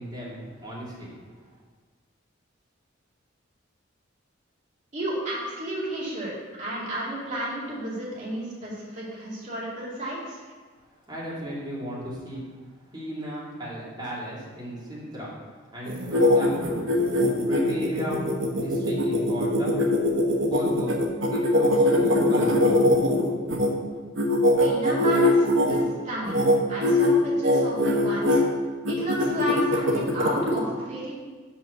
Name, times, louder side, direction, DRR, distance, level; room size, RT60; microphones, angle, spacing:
voice 1, 0.0-1.4 11.1-12.4 12.9-16.6 17.4-19.8 20.5-21.0 21.3-22.8, equal, 20° right, -7 dB, 2.4 m, -35 dB
voice 2, 4.9-6.3 6.6-10.4 24.6-26.4 26.7-28.4 28.9-31.1, right 1 dB, 35° right, -7 dB, 2.4 m, -32 dB
sound 1, 15.9-23.7 24.2-25.8 26.3-26.6 26.8-27.1 27.4-28.4 28.8-30.6, left 1 dB, 65° right, 1.2 m, -22 dB
5.9 x 5.8 x 6.5 m, 1.4 s
head